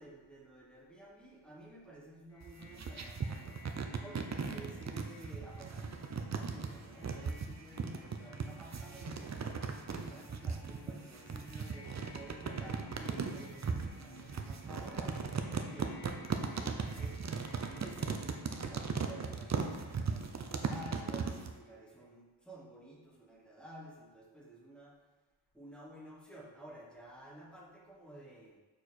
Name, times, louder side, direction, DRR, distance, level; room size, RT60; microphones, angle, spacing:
voice 1, 0.0-3.7 4.0-9.4 9.9-17.3 17.6-25.0 25.5-28.6, right 1 dB, ahead, -3 dB, 1.2 m, -52 dB
sound 1, 2.3-22.1, left 1 dB, 30° left, 1.3 m, -56 dB
sound 2, 2.4-21.5, right 5 dB, 35° right, 0.5 m, -37 dB
6.5 x 4.6 x 4.2 m, 1.2 s
wide cardioid pair, 150°, 48 cm